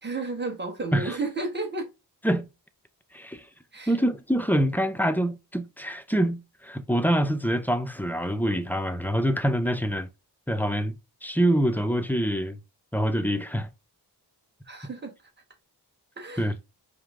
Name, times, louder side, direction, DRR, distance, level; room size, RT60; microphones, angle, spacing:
voice 1, 0.0-1.9 3.7-4.0 14.6-15.1 16.2-16.5, right 3 dB, 25° right, 1.4 m, -32 dB
voice 2, 3.1-3.5 3.9-10.1 10.5-10.9 11.2-12.6 12.9-13.7 16.4-16.5, equal, 5° left, 0.6 m, -25 dB
4.9 x 2.1 x 3.6 m
wide cardioid pair, 65°, 41 cm